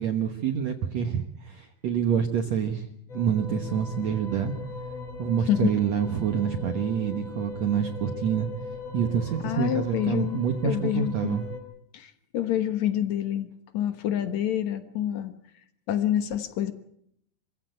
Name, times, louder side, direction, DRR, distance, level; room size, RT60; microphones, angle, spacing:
voice 1, 0.0-2.9 3.1-4.5 5.2-8.5 8.9-11.4, right 8 dB, 70° right, 6 dB, 1.6 m, -27 dB
sound 1, 3.1-11.6, left 3 dB, 35° left, 6.7 m, -39 dB
voice 2, 9.4-11.4 11.9-13.5 13.7-15.3 15.9-16.7, left 11 dB, 70° left, 10 dB, 1.7 m, -27 dB
26.0 x 16.0 x 9.0 m, 0.72 s
omnidirectional pair, 4.9 m